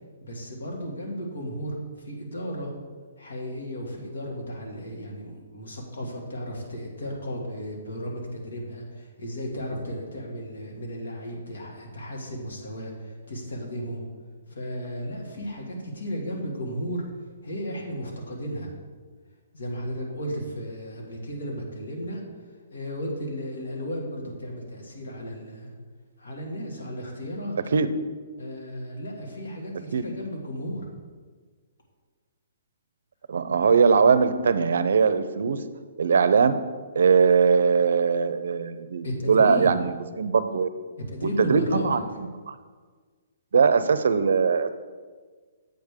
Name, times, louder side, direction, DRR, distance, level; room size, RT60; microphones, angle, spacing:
voice 1, 0.2-2.7 3.2-14.0 14.5-17.0 17.4-18.7 19.5-22.2 22.7-25.7 26.2-27.8 28.4-31.0 39.0-39.7 41.1-42.2, equal, 85° left, -1 dB, 2.0 m, -34 dB
voice 2, 33.3-35.6 36.0-36.6 36.9-40.7 41.4-42.6 43.5-44.7, right 5 dB, 75° right, 12 dB, 0.5 m, -21 dB
7.8 x 3.6 x 6.5 m, 1.5 s
hypercardioid pair, 170°, 0 cm